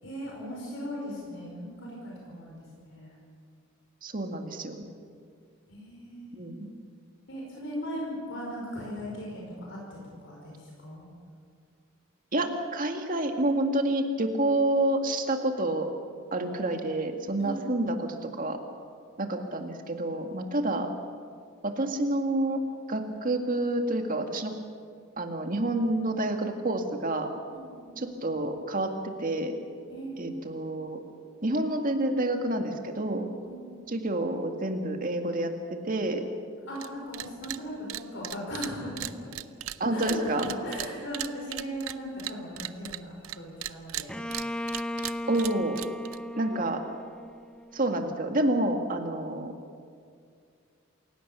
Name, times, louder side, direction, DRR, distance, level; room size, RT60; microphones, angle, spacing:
voice 1, 0.0-3.2 5.7-6.7 7.3-11.1 17.4-17.9 27.5-28.0 29.9-30.5 33.4-34.0 36.7-39.0 39.9-44.2, equal, 60° left, -3 dB, 5.2 m, -38 dB
voice 2, 4.0-4.8 6.4-6.7 12.3-15.9 16.3-18.6 19.2-20.9 21.6-22.6 22.9-24.5 25.2-27.3 28.0-29.6 30.2-31.0 31.4-33.3 33.9-36.3 39.8-40.5 45.3-45.8 46.4-46.8 47.7-49.5, right 1 dB, 40° right, 4 dB, 2.0 m, -28 dB
sound 1, 36.7-36.9 37.1-37.6 37.9-43.4 43.6-46.2, right 13 dB, 75° right, 0.7 m, -37 dB
Bowed string instrument, 44.1-47.8, left 1 dB, 5° left, 0.4 m, -36 dB
28.0 x 17.0 x 6.9 m, 2.2 s
head